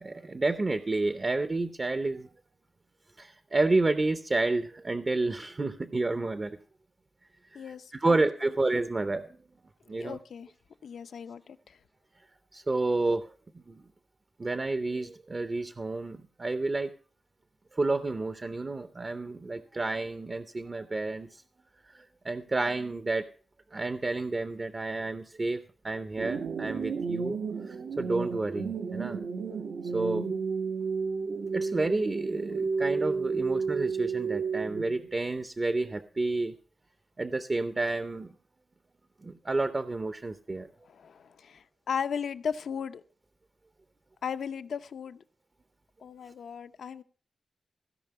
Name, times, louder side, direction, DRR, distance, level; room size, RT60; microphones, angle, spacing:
voice 1, 0.0-2.3 3.2-6.6 7.5-7.6 8.0-9.3 9.9-10.2 12.5-13.3 13.7-13.8 14.4-16.9 17.7-21.3 22.2-23.3 23.7-27.4 27.7-29.2 29.9-30.3 31.5-36.5 37.2-38.3 39.2-40.7, right 2 dB, 30° right, 0.6 m, -30 dB
voice 2, 7.5-8.6 9.9-10.5 10.8-11.8 40.8-43.0 44.2-45.2 46.0-47.0, left 7 dB, 75° left, 0.7 m, -37 dB
sound 1, 26.2-35.1, right 5 dB, 80° right, 0.9 m, -32 dB
16.0 x 5.4 x 6.7 m
wide cardioid pair, 150°, 0 cm